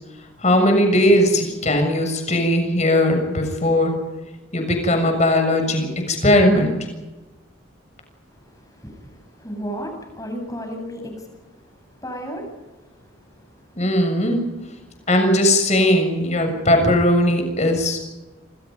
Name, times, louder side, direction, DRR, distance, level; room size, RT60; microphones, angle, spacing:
voice 1, 0.4-4.0 4.5-6.8 13.8-14.4 15.1-18.0, left 1 dB, 35° left, 5 dB, 7.0 m, -18 dB
voice 2, 8.3-12.5 12.8-13.4 15.0-15.1, equal, 15° left, 3 dB, 8.0 m, -35 dB
29.0 x 26.0 x 5.4 m, 1.1 s
head